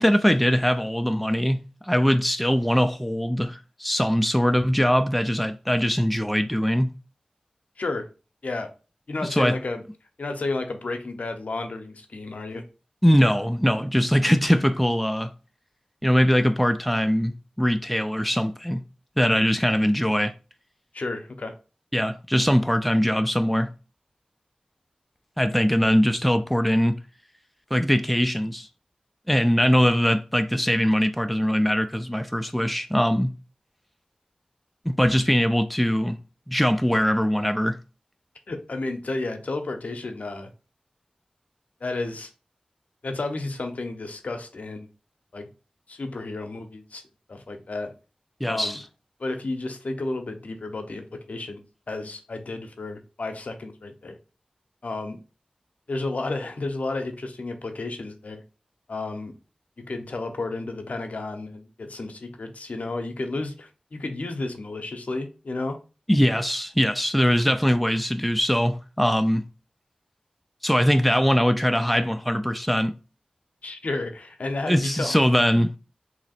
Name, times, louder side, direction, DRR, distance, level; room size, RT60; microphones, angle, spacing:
voice 1, 0.0-6.9 9.2-9.6 13.0-15.3 16.0-18.8 19.2-20.3 21.9-23.7 25.4-27.0 27.7-28.7 29.3-33.3 34.9-36.2 36.5-37.8 48.4-48.8 66.1-69.4 70.6-72.9 74.7-75.8, equal, ahead, 0.3 m, -22 dB
voice 2, 7.8-8.1 8.4-8.7 9.1-9.8 10.2-12.6 20.9-21.5 38.5-40.5 41.8-42.3 43.0-44.9 45.3-45.5 45.9-47.0 47.3-47.9 48.5-48.8 49.2-54.2 54.8-55.2 55.9-58.4 58.9-59.3 59.8-65.8 73.6-75.3, left 2 dB, 75° left, 0.6 m, -32 dB
3.0 x 2.8 x 4.2 m
wide cardioid pair, 55°, 2 cm